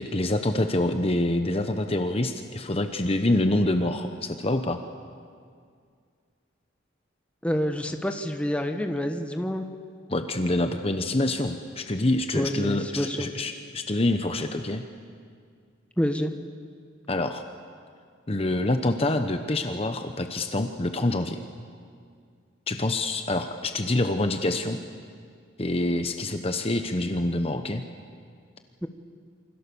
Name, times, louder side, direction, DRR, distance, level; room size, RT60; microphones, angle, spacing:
voice 1, 0.0-4.8 10.1-14.8 17.1-17.4 18.3-21.4 22.7-24.8 25.6-27.8, left 2 dB, 30° left, 7 dB, 1.0 m, -26 dB
voice 2, 7.4-9.7 12.3-13.3 16.0-16.3 28.8-28.9, equal, 5° left, 5 dB, 1.3 m, -27 dB
28.0 x 25.0 x 7.1 m, 2.2 s
head